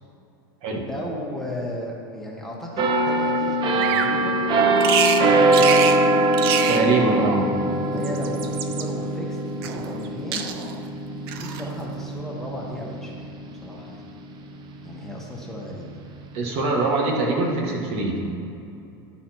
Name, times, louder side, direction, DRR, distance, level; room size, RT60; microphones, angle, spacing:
voice 1, 0.7-4.4 5.6-5.8 7.9-9.4 9.7-10.5 11.4-14.0 14.8-16.0, left 1 dB, 5° left, -4 dB, 1.3 m, -35 dB
sound 1, 2.8-14.3 14.7-15.0, right 2 dB, 35° right, 0.8 m, -22 dB
Bird vocalization bird call bird song, 3.8-4.1 4.8-5.2 5.5-6.0 6.3-6.9 7.9-8.9 9.6-10.1 10.3-10.8 11.3-11.7, right 8 dB, 75° right, 0.7 m, -26 dB
voice 2, 6.7-7.5 16.3-18.3, right 3 dB, 55° right, -1 dB, 1.7 m, -23 dB
12.0 x 4.2 x 4.5 m, 2.7 s
supercardioid pair, 115°, 13 cm